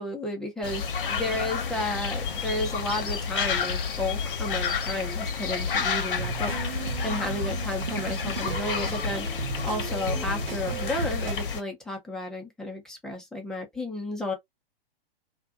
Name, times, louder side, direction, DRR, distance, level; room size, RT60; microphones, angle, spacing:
voice 1, 0.0-9.3 9.6-14.3, left 1 dB, ahead, 0.6 m, -32 dB
sound 1, 0.6-11.6, left 5 dB, 65° left, 0.8 m, -30 dB
sound 2, 6.2-11.3, right 7 dB, 80° right, 0.6 m, -35 dB
2.5 x 2.3 x 2.4 m
figure-of-eight pair, 120°, 29 cm